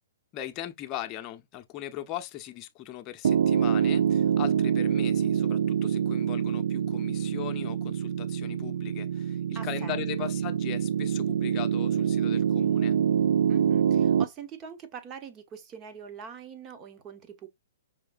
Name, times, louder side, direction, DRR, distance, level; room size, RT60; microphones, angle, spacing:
voice 1, 0.3-13.0, left 13 dB, 30° left, 0.8 m, -39 dB
Piano, 3.2-14.3, right 8 dB, 70° right, 0.3 m, -26 dB
voice 2, 9.5-10.3 13.5-17.5, right 7 dB, 25° right, 1.0 m, -43 dB
5.8 x 3.1 x 2.4 m
hypercardioid pair, 130°, 0 cm